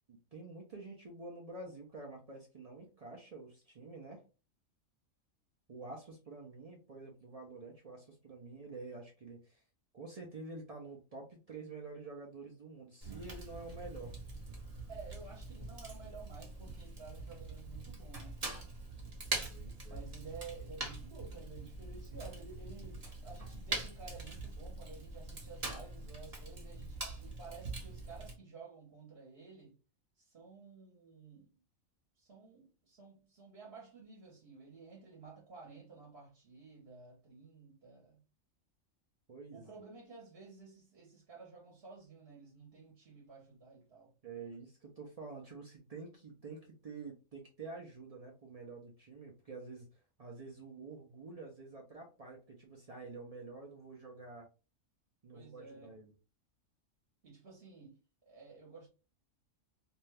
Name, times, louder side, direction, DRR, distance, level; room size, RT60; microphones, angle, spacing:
voice 1, 0.1-4.2 5.7-9.6 9.9-14.2 19.5-20.0 39.3-39.7 44.2-49.9 50.2-54.5 55.2-56.1, right 3 dB, 65° right, 0.3 m, -48 dB
Fire, 13.0-28.3, right 2 dB, 35° right, 0.7 m, -43 dB
voice 2, 14.9-18.4 19.9-29.8 30.2-31.5 32.2-38.2 39.5-44.1 55.3-56.0 57.2-58.0 58.2-58.9, right 4 dB, 50° right, 1.0 m, -53 dB
2.6 x 2.2 x 3.2 m
omnidirectional pair, 1.4 m